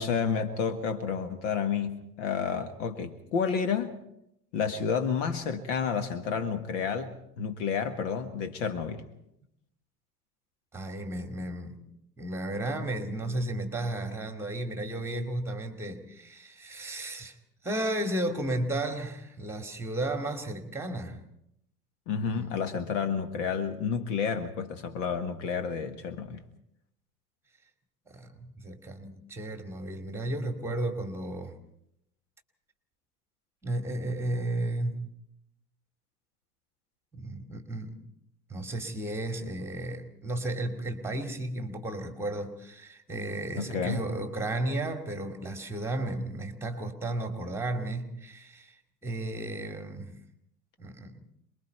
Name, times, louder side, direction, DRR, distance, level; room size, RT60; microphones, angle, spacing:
voice 1, 0.0-4.0 4.5-9.0 22.1-26.4 43.5-44.1, left 6 dB, 50° left, 8 dB, 1.7 m, -30 dB
voice 2, 10.7-11.8 12.2-17.4 17.6-21.2 22.3-22.7 28.1-31.6 33.6-35.1 37.1-38.0 38.5-48.8 49.0-50.2 50.8-51.3, right 1 dB, 5° right, 5 dB, 2.5 m, -33 dB
27.5 x 21.5 x 4.5 m, 0.78 s
figure-of-eight pair, 85°, 46 cm